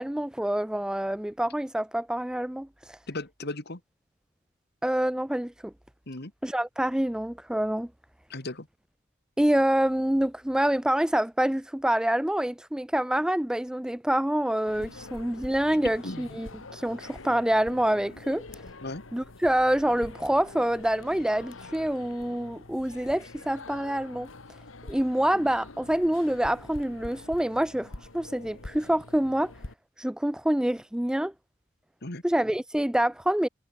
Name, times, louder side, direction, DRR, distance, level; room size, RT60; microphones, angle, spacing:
voice 1, 0.0-3.0 4.8-5.7 6.4-7.9 9.4-18.4 19.1-24.3 24.8-29.5 30.0-31.3 32.2-33.5, right 1 dB, 5° right, 0.4 m, -26 dB
voice 2, 3.1-3.8 6.1-6.3 8.3-8.7 16.0-16.4 18.8-19.0 32.0-32.2, left 2 dB, 55° left, 2.8 m, -36 dB
sound 1, 14.7-29.7, left 2 dB, 85° left, 1.8 m, -45 dB
head